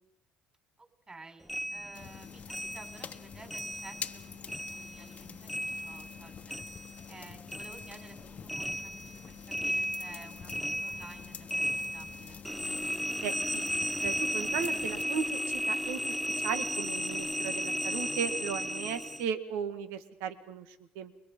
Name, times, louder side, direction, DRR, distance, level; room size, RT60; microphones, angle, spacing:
voice 1, 0.8-6.6 7.1-12.4, right 3 dB, 25° right, 6 dB, 4.9 m, -53 dB
sound 1, 1.5-4.2 4.5-7.2 7.5-19.3, equal, ahead, 0.8 m, -35 dB
sound 2, 1.9-15.0, left 7 dB, 45° left, 1.2 m, -47 dB
voice 2, 13.2-13.7 14.0-16.0 16.4-21.1, right 7 dB, 80° right, 9 dB, 1.8 m, -36 dB
29.5 x 23.0 x 5.4 m, 0.85 s
hypercardioid pair, 70°, 3 cm